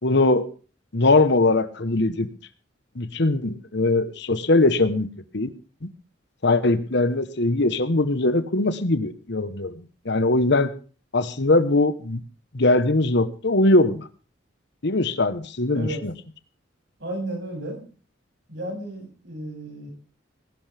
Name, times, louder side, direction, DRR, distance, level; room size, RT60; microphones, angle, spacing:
voice 1, 0.0-0.5 0.9-2.3 2.9-5.1 5.3-5.5 5.8-5.9 6.4-10.7 11.1-12.2 12.5-14.1 14.8-16.1, left 2 dB, 65° left, 13 dB, 1.2 m, -21 dB
voice 2, 17.0-17.9 18.5-19.9, right 1 dB, 65° right, 0 dB, 7.5 m, -33 dB
20.0 x 11.5 x 3.5 m, 0.36 s
head